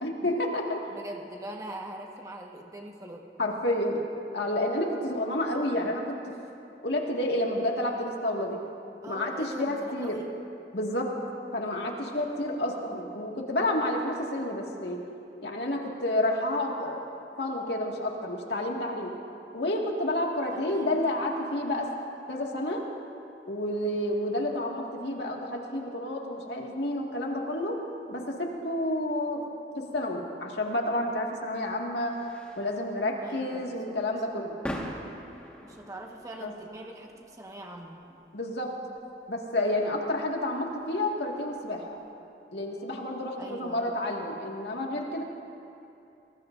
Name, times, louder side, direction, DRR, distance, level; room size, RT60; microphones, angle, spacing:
voice 1, 0.0-0.8 3.4-4.0 4.3-6.3 6.8-8.6 9.1-10.2 10.7-11.1 11.5-15.0 15.4-17.0 17.4-19.2 19.5-21.9 22.3-22.8 23.5-27.8 28.1-29.4 29.9-32.1 32.6-34.6 36.4-36.5 38.3-38.7 39.3-42.0 42.5-45.2, left 1 dB, 75° left, 0 dB, 2.0 m, -30 dB
voice 2, 0.9-3.3 9.0-10.3 20.5-21.0 33.2-34.0 35.6-38.0 43.4-44.0, right 1 dB, 20° right, 0 dB, 1.4 m, -42 dB
sound 1, 30.7-42.0, equal, 5° left, 1.6 m, -45 dB
24.5 x 19.5 x 2.6 m, 2.8 s
head